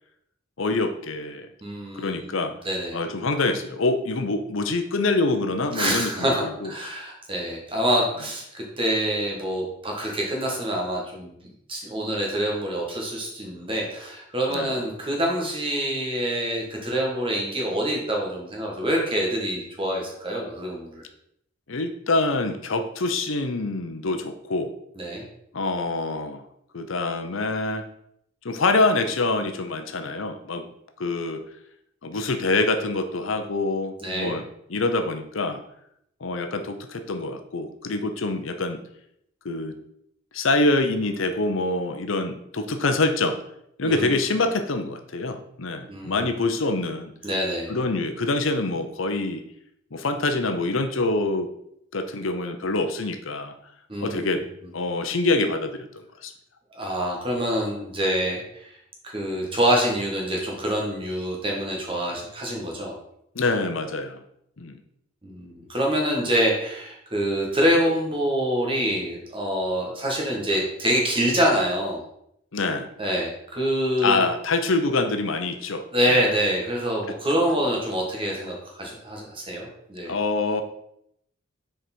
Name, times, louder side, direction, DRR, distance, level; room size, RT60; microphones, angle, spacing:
voice 1, 0.6-1.5 1.9-2.5 2.9-6.7 14.5-14.7 21.7-24.7 25.5-26.4 26.7-27.8 28.4-30.7 31.0-31.4 32.0-35.6 36.2-38.8 39.4-39.7 40.3-43.4 43.8-47.1 47.7-49.4 49.9-51.5 51.9-53.5 54.0-54.4 54.7-55.9 56.2-56.3 63.3-64.2 64.6-64.8 72.5-72.9 74.0-76.2 80.1-80.6, left 2 dB, 75° left, 7 dB, 0.8 m, -25 dB
voice 2, 1.6-3.0 5.7-11.3 11.7-21.0 25.0-25.2 34.0-34.3 43.8-44.1 45.9-46.3 47.2-47.7 53.9-54.4 56.7-58.7 59.0-62.9 65.2-72.0 73.0-74.3 75.9-80.1, equal, 25° right, -1 dB, 1.7 m, -26 dB
6.5 x 4.8 x 4.5 m, 0.75 s
head